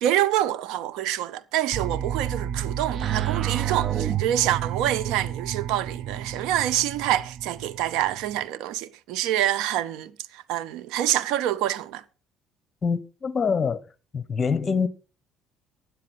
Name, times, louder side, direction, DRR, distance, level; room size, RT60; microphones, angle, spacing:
voice 1, 0.0-12.0, right 12 dB, 80° right, 0.8 m, -26 dB
sound 1, 1.7-8.4, right 10 dB, 50° right, 0.9 m, -30 dB
voice 2, 12.8-13.8 14.1-14.9, left 5 dB, 35° left, 1.1 m, -25 dB
9.9 x 8.6 x 6.2 m
cardioid pair, 100°, 0 cm